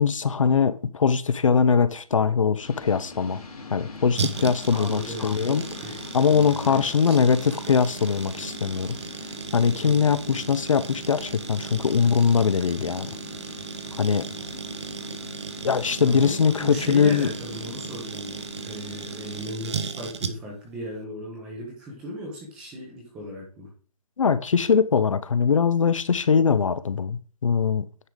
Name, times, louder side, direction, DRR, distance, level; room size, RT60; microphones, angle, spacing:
voice 1, 0.0-3.4 3.7-5.6 6.1-9.0 9.5-13.1 14.0-14.2 15.6-17.3 24.2-27.9, left 6 dB, 55° left, 0.6 m, -22 dB
sound 1, 2.6-19.5, left 3 dB, 70° left, 2.3 m, -43 dB
sound 2, 4.2-20.7 20.9-21.0, right 5 dB, 45° right, 0.8 m, -36 dB
voice 2, 4.7-6.0 6.3-7.2 9.8-10.1 16.0-23.7, equal, 5° right, 0.7 m, -37 dB
9.5 x 3.7 x 4.8 m
hypercardioid pair, 175°, 19 cm